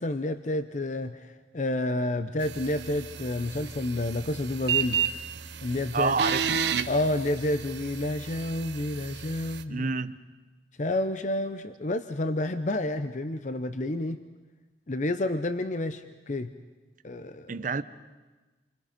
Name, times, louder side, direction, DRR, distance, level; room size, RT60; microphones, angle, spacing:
voice 1, 0.0-5.0 5.6-6.1 6.9-9.9 10.8-14.2 14.9-16.5 17.0-17.5, left 1 dB, 45° left, 10 dB, 0.7 m, -29 dB
sound 1, 2.4-9.6, right 7 dB, 75° right, 0.9 m, -32 dB
voice 2, 5.9-6.8 9.7-10.1 17.5-17.8, right 4 dB, 50° right, 13 dB, 0.7 m, -28 dB
28.5 x 24.0 x 5.2 m, 1.2 s
head